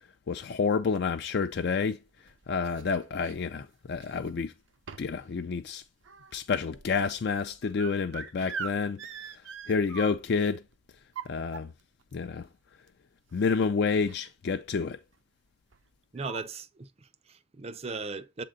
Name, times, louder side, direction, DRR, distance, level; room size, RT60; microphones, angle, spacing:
voice 1, 0.3-2.0 2.5-4.5 5.0-5.8 6.3-9.0 9.7-10.6 11.3-11.7 12.1-12.5 13.3-15.0, left 5 dB, 55° left, 0.4 m, -29 dB
sound 1, 1.9-3.4 3.9-4.4 4.9-5.2 5.6-10.5 11.0-12.0 12.9-13.0 13.3-13.5 13.8-14.3 14.6-14.8 15.7-15.8 16.2-16.4, right 6 dB, 75° right, 0.6 m, -42 dB
voice 2, 16.1-18.4, right 4 dB, 30° right, 0.4 m, -38 dB
7.5 x 3.8 x 3.8 m
head